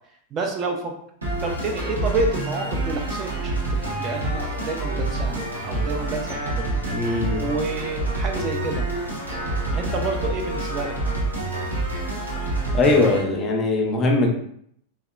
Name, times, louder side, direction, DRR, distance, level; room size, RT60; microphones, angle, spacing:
voice 1, 0.3-0.9 1.4-6.8 7.4-8.9 9.7-10.9, right 3 dB, 30° right, 2 dB, 0.3 m, -29 dB
sound 1, 1.2-13.2, right 2 dB, 80° right, 0.8 m, -27 dB
voice 2, 6.9-7.4 12.7-14.3, left 2 dB, 25° left, 1 dB, 0.5 m, -20 dB
2.7 x 2.1 x 2.3 m, 0.67 s
figure-of-eight pair, 90°, 0 cm